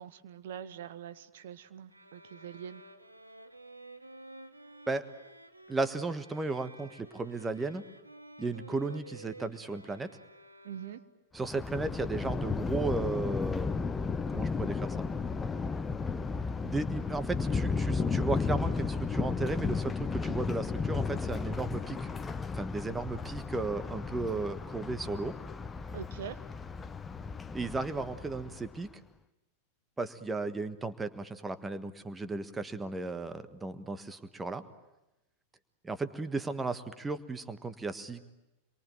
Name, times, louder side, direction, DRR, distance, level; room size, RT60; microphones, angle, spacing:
voice 1, 0.0-2.8 10.6-11.0 25.9-26.4, right 8 dB, 55° right, 12 dB, 1.3 m, -43 dB
sound 1, 1.9-11.3, right 2 dB, 85° right, 1.2 m, -52 dB
voice 2, 5.7-7.8 8.4-10.1 11.3-13.8 14.3-15.0 16.6-22.1 22.5-25.4 27.5-28.9 30.0-34.6 35.8-38.2, right 3 dB, 10° right, 10 dB, 1.4 m, -35 dB
Thunder, 11.4-28.8, left 4 dB, 15° left, 0.9 m, -34 dB
27.5 x 23.0 x 9.1 m, 0.98 s
figure-of-eight pair, 90°, 0 cm